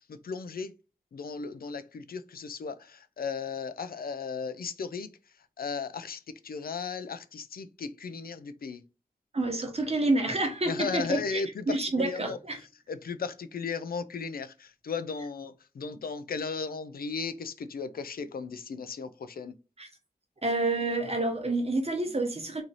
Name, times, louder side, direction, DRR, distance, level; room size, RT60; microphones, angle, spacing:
voice 1, 0.1-0.7 1.1-5.1 5.6-8.8 10.7-12.4 12.9-19.5, left 5 dB, 85° left, 0.4 m, -36 dB
voice 2, 9.3-12.6 19.8-19.9 20.4-22.6, right 2 dB, 45° right, 1.0 m, -28 dB
3.1 x 2.6 x 3.9 m
wide cardioid pair, 80°, 15 cm